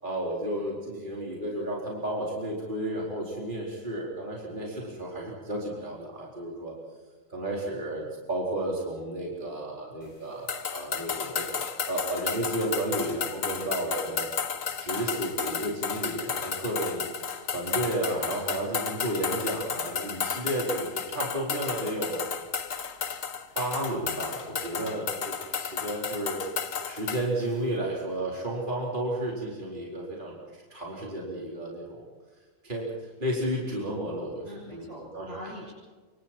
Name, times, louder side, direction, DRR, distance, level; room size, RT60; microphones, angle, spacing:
voice 1, 0.0-6.7 7.3-14.3 14.8-17.1 17.4-22.3 23.6-26.4 26.8-32.0 32.6-34.4 34.7-34.8 35.1-35.3, right 1 dB, 35° right, -3 dB, 4.5 m, -32 dB
sound 1, 10.5-27.3, left 6 dB, 70° left, 1.7 m, -33 dB
voice 2, 24.7-25.0 34.4-35.7, equal, 60° right, -8 dB, 8.3 m, -43 dB
27.5 x 25.0 x 4.5 m, 1.4 s
omnidirectional pair, 1.4 m